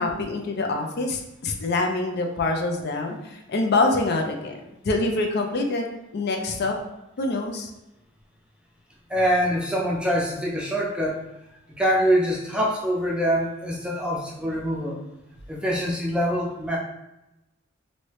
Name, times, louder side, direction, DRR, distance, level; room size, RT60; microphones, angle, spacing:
voice 1, 0.0-6.8 7.2-7.7, left 2 dB, 55° left, 3 dB, 0.5 m, -25 dB
voice 2, 9.1-11.2 11.8-15.0 15.5-16.8, equal, 5° right, -3 dB, 0.5 m, -24 dB
3.1 x 2.7 x 3.1 m, 0.93 s
head